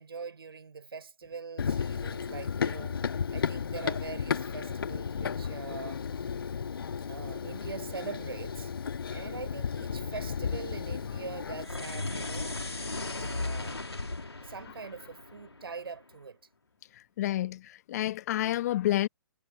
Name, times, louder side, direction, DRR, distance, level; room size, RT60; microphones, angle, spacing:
voice 1, 0.0-6.2 7.1-8.7 9.1-12.6 13.1-14.0 14.4-16.4, right 5 dB, 70° right, 4.7 m, -43 dB
Run, 1.6-11.6, left 6 dB, 65° left, 1.8 m, -34 dB
sound 1, 11.5-16.0, left 2 dB, 85° left, 2.3 m, -36 dB
voice 2, 17.2-19.1, left 14 dB, 40° left, 1.0 m, -29 dB
figure-of-eight pair, 125°, 13 cm